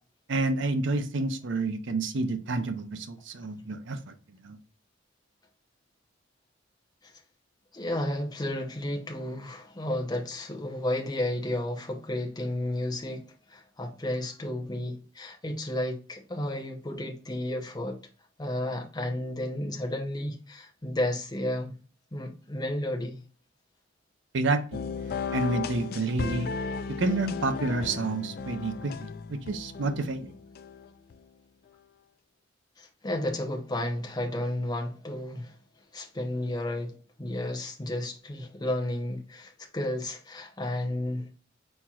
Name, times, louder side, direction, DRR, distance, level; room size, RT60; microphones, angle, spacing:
voice 1, 0.3-4.6 24.3-24.8 25.3-26.5 27.0-30.3, right 3 dB, 65° right, 0.6 m, -29 dB
voice 2, 7.7-18.0 18.4-21.8 22.1-23.2 32.8-35.5 35.9-41.3, left 1 dB, 20° left, 0.8 m, -32 dB
sound 1, 24.7-31.2, left 5 dB, 50° left, 0.4 m, -35 dB
4.3 x 4.3 x 2.4 m
head